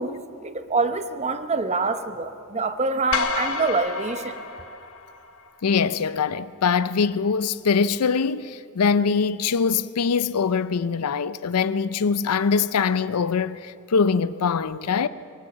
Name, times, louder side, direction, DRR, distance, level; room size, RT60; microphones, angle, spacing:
voice 1, 0.0-4.4, right 3 dB, 30° right, 0.9 m, -26 dB
sound 1, 3.1-5.5, left 4 dB, 70° left, 1.2 m, -29 dB
voice 2, 5.6-15.1, left 5 dB, 85° left, 0.5 m, -23 dB
23.5 x 17.5 x 7.3 m
head